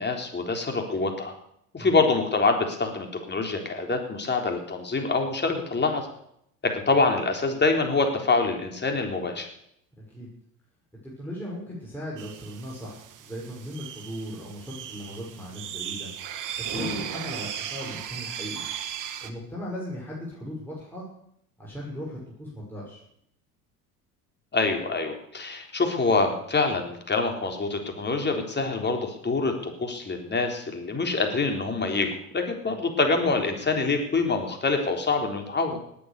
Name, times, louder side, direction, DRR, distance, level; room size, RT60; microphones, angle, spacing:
voice 1, 0.0-1.3 1.7-6.1 6.6-9.5 16.7-17.1 24.5-35.8, left 3 dB, 20° left, 3 dB, 3.9 m, -25 dB
voice 2, 10.0-10.3 11.0-16.1 16.6-18.6 19.2-21.1 21.6-23.0 32.7-32.8, equal, 5° left, -5 dB, 6.3 m, -38 dB
sound 1, 12.2-19.3, right 9 dB, 40° right, 1.7 m, -36 dB
19.0 x 8.8 x 6.9 m, 0.73 s
hypercardioid pair, 70°, 46 cm